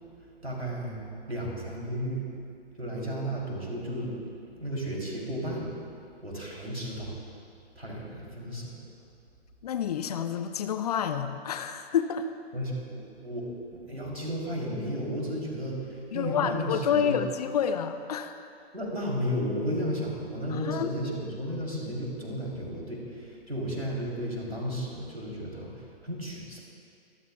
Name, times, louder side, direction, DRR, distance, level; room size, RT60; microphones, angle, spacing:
voice 1, 0.4-1.0 1.3-2.3 2.8-4.1 4.5-5.7 6.2-7.1 7.8-8.7 12.5-17.2 18.7-26.6, equal, 85° right, -2 dB, 3.5 m, -33 dB
voice 2, 9.6-12.3 16.1-18.5 20.5-20.9, left 8 dB, 40° left, 9 dB, 0.6 m, -29 dB
24.0 x 13.0 x 2.4 m, 2.5 s
figure-of-eight pair, 115°, 31 cm